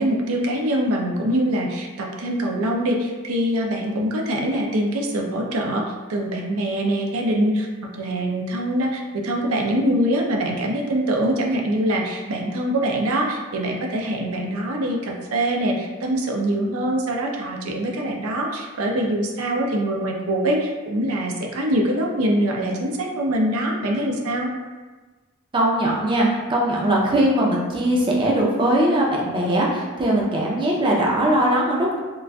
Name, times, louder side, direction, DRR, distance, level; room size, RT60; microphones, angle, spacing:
voice 1, 0.0-5.8 6.1-24.5, right 1 dB, 80° right, 0 dB, 0.5 m, -23 dB
voice 2, 25.5-32.0, right 1 dB, 20° right, -3 dB, 0.4 m, -20 dB
3.8 x 2.4 x 2.2 m, 1.3 s
head